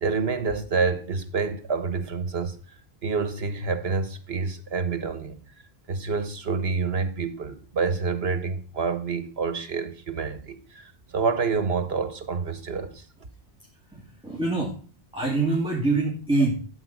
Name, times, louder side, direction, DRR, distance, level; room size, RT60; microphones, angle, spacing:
voice 1, 0.0-2.6 3.0-5.4 5.9-13.0, right 4 dB, 80° right, 1.5 m, -28 dB
voice 2, 13.9-14.7 15.1-16.5, right 3 dB, 5° right, 2.4 m, -25 dB
13.5 x 4.9 x 8.2 m
omnidirectional pair, 1.0 m